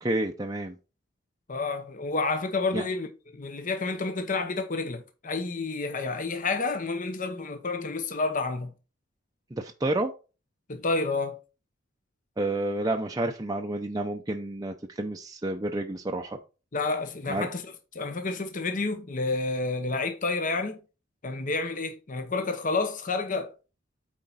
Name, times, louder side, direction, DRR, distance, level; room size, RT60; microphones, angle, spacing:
voice 1, 0.0-0.8 2.7-2.8 9.5-10.1 12.4-16.4 17.3-17.5, right 2 dB, 20° right, 0.6 m, -30 dB
voice 2, 1.5-3.1 3.3-8.7 10.7-11.4 16.7-17.6 17.9-20.8 21.2-23.5, left 3 dB, 40° left, 0.9 m, -29 dB
8.7 x 4.4 x 4.0 m
head